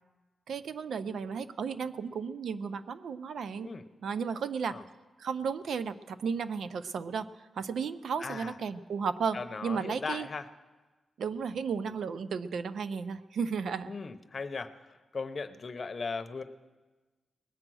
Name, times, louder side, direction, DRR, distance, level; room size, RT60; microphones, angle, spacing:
voice 1, 0.5-3.7 4.0-4.8 5.2-7.3 7.5-10.3 11.2-13.9, right 6 dB, 80° right, 13 dB, 0.5 m, -34 dB
voice 2, 8.2-8.5 9.3-10.4 13.8-14.7 15.1-16.4, left 4 dB, 40° left, 10 dB, 0.8 m, -37 dB
20.0 x 8.9 x 6.2 m, 1.2 s
wide cardioid pair, 110°, 0 cm